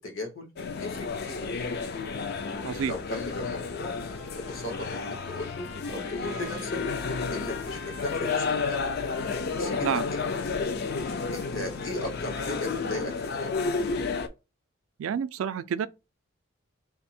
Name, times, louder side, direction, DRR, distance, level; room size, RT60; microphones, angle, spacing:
voice 1, 0.0-0.5 0.8-1.5 2.9-4.0 4.3-6.8 7.3-8.8 9.6-10.2 11.0-13.9, left 2 dB, 65° left, 1.1 m, -37 dB
sound 1, 0.6-14.3, left 4 dB, 50° left, 0.4 m, -31 dB
voice 2, 2.6-2.9 9.8-10.0 15.0-15.9, right 7 dB, 75° right, 0.3 m, -29 dB
Trumpet, 3.8-12.0, left 4 dB, 85° left, 0.7 m, -45 dB
3.4 x 2.0 x 4.1 m
head